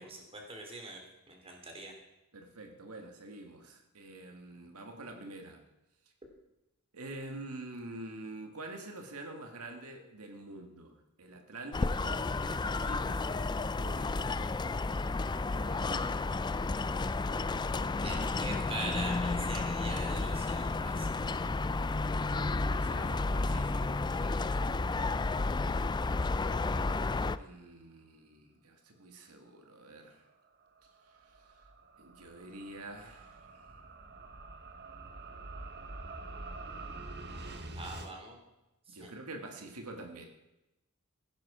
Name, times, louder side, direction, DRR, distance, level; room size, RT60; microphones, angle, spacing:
voice 1, 0.0-1.9 18.0-21.2 37.7-38.4 38.9-39.1, right 2 dB, 25° right, 2 dB, 3.2 m, -43 dB
voice 2, 2.3-5.6 6.9-14.6 15.2-16.3 22.6-24.4 27.4-30.2 31.2-31.6 32.0-33.8 38.9-40.3, right 2 dB, 75° right, 4 dB, 1.9 m, -47 dB
sound 1, 11.7-27.4, left 3 dB, 20° left, 0.4 m, -32 dB
sound 2, 30.3-38.1, right 2 dB, 50° right, 1.2 m, -46 dB
16.0 x 10.5 x 5.0 m, 0.94 s
head